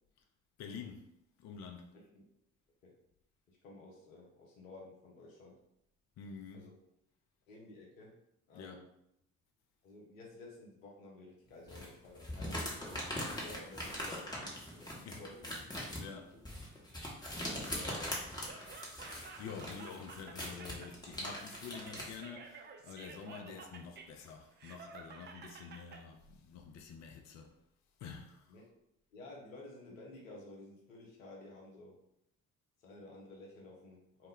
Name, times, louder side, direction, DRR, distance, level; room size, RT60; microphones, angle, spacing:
voice 1, 0.6-1.1 1.4-2.0 6.2-6.7 8.5-8.8 15.0-15.2 16.0-16.4 19.4-27.5 28.0-28.5, left 6 dB, 45° left, 0.4 m, -48 dB
voice 2, 1.9-2.2 2.8-2.9 3.5-5.6 6.5-6.7 7.5-8.2 8.5-8.9 9.8-12.7 13.2-15.6 16.3-16.5 17.4-18.3 28.5-28.7 29.1-32.0 32.8-34.3, left 2 dB, 85° left, 0.6 m, -53 dB
sound 1, 11.7-22.2, left 1 dB, 10° left, 0.8 m, -41 dB
Laughter, 18.3-26.0, right 5 dB, 30° right, 0.4 m, -52 dB
2.1 x 2.1 x 3.5 m
figure-of-eight pair, 45°, 39 cm